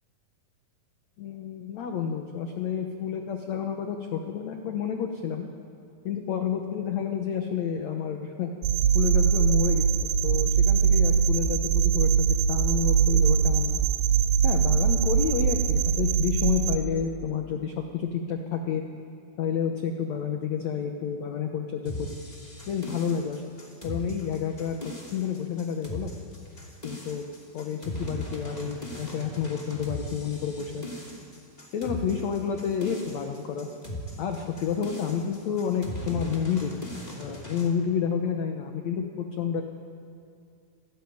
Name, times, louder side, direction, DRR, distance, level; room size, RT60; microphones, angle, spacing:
voice 1, 1.2-5.5 6.0-8.5 8.9-13.8 14.4-18.8 19.4-22.2 22.7-23.5 23.8-26.1 26.8-27.2 27.5-30.8 31.7-33.7 34.2-36.7 37.2-39.6, left 7 dB, 65° left, 4 dB, 1.8 m, -30 dB
sound 1, 8.6-16.8, right 7 dB, 80° right, 2.9 m, -22 dB
sound 2, 21.8-37.7, equal, 15° left, 2.1 m, -39 dB
27.0 x 14.0 x 9.6 m, 2.5 s
omnidirectional pair, 4.5 m